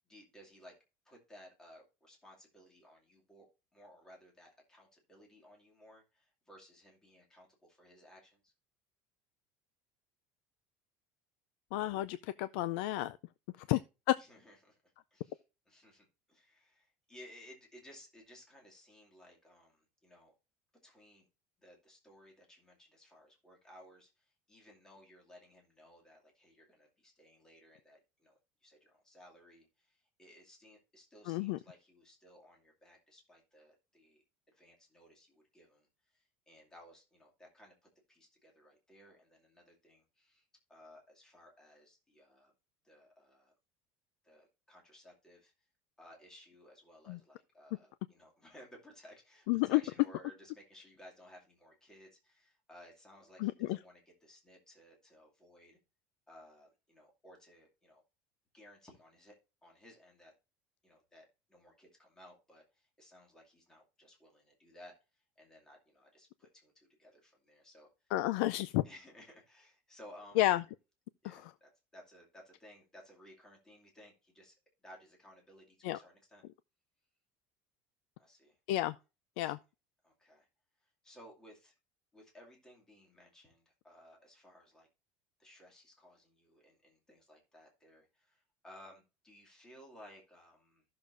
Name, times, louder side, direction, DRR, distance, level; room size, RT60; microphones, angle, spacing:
voice 1, 0.1-0.7 1.0-8.5 13.5-13.7 14.2-20.3 20.8-21.3 21.6-37.7 38.1-42.5 42.8-43.5 44.2-45.5 46.0-55.8 56.3-58.0 58.5-60.3 60.8-67.9 68.8-70.5 71.2-74.6 74.8-76.4 78.2-78.6 79.4-79.5 80.0-80.5 80.8-81.8 82.1-84.9 85.4-90.8, equal, 10° left, 2.4 m, -59 dB
voice 2, 11.7-13.2 13.7-13.8 14.1-14.2 31.3-31.6 47.1-47.2 49.5-49.8 53.4-53.8 68.1-68.8 70.4-70.6 71.2-71.4 75.8-76.0 78.7-78.9 79.4-79.6, left 16 dB, 70° left, 0.4 m, -31 dB
14.5 x 6.6 x 2.6 m
cardioid pair, 175°, 6 cm